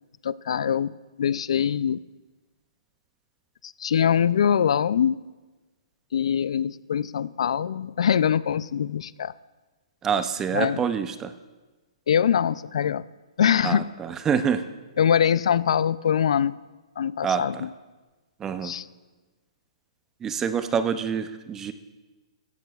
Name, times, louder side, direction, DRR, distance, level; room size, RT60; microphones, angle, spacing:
voice 1, 0.2-0.9 1.2-2.0 3.6-5.2 6.1-9.3 10.5-10.8 12.1-13.0 13.4-13.8 15.0-16.6 17.0-17.7 18.6-18.8, left 8 dB, 65° left, 18 dB, 0.3 m, -23 dB
voice 2, 10.0-11.3 13.6-14.7 17.2-17.7 18.4-18.8 20.2-21.7, right 7 dB, 10° right, 11 dB, 0.5 m, -26 dB
16.0 x 14.0 x 2.3 m, 1.2 s
hypercardioid pair, 160°, 3 cm